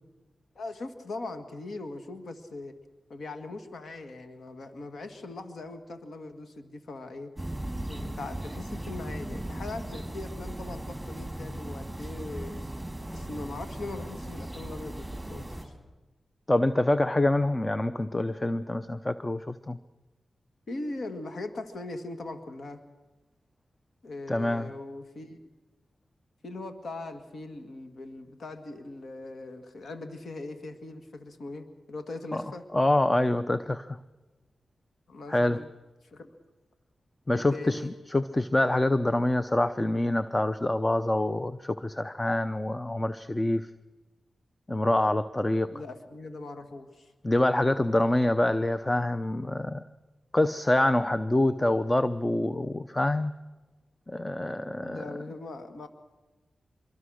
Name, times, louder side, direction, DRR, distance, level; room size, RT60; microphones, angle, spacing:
voice 1, 0.6-2.8 3.1-7.3 7.9-12.5 13.1-15.7 20.7-22.8 24.0-25.4 26.4-32.7 35.1-35.7 36.0-36.3 37.3-38.0 45.7-47.1 54.8-55.9, left 2 dB, 75° left, 7 dB, 2.0 m, -40 dB
sound 1, 7.4-15.6, right 1 dB, 5° right, 5.0 m, -37 dB
voice 2, 16.5-19.8 24.3-24.7 32.3-32.4 32.7-34.0 35.3-35.6 37.3-43.7 44.7-45.7 47.2-49.8 50.3-53.3 54.1-55.2, left 1 dB, 25° left, 12 dB, 0.7 m, -26 dB
25.0 x 23.0 x 6.5 m, 1.2 s
cardioid pair, 55°, 0 cm